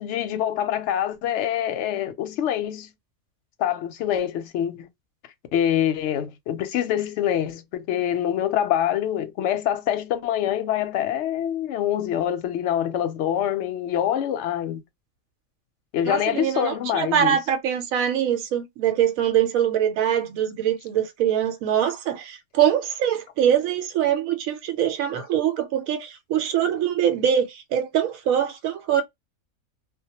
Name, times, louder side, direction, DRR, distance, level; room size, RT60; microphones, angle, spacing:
voice 1, 0.0-2.9 3.6-4.9 5.5-14.8 15.9-17.4, left 10 dB, 65° left, 0.8 m, -25 dB
voice 2, 16.1-29.0, right 9 dB, 80° right, 1.0 m, -23 dB
2.2 x 2.1 x 2.7 m
omnidirectional pair, 1.4 m